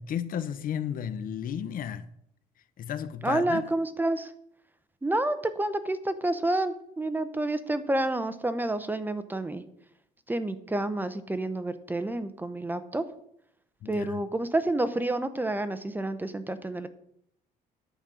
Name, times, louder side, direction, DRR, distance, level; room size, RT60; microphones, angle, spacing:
voice 1, 0.0-2.0 2.8-3.6 13.8-14.2, left 9 dB, 55° left, 0.8 m, -33 dB
voice 2, 3.2-4.3 5.0-9.6 10.3-13.0 13.9-16.9, right 1 dB, 10° right, 0.7 m, -29 dB
10.0 x 5.3 x 7.5 m
cardioid pair, 110°, 17 cm